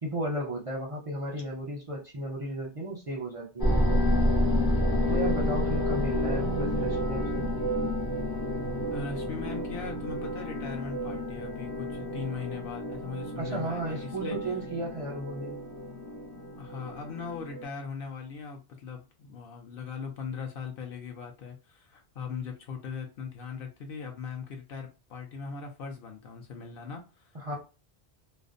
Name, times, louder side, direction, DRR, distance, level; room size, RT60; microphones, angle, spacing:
voice 1, 0.0-3.8 5.1-7.5 13.4-15.6 27.3-27.6, right 1 dB, 45° right, 0.5 m, -34 dB
sound 1, 3.6-17.6, left 1 dB, 30° left, 0.5 m, -30 dB
voice 2, 8.9-14.4 16.6-27.6, left 5 dB, 60° left, 0.7 m, -39 dB
2.5 x 2.0 x 2.4 m
omnidirectional pair, 1.1 m